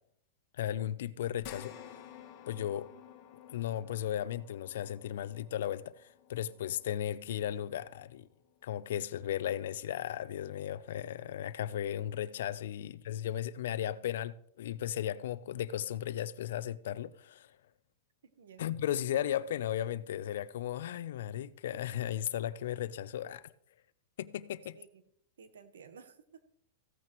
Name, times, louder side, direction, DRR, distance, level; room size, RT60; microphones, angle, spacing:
voice 1, 0.6-1.7 2.5-2.9 3.5-8.3 8.6-17.5 18.6-23.5 24.2-24.8, left 11 dB, 75° left, 0.5 m, -36 dB
sound 1, 1.4-10.0 10.5-10.6 12.0-12.1, left 10 dB, 45° left, 1.7 m, -54 dB
voice 2, 18.2-18.7 24.7-25.0 25.4-26.4, right 6 dB, 90° right, 1.2 m, -54 dB
15.5 x 8.9 x 3.1 m
hypercardioid pair, 135°, 0 cm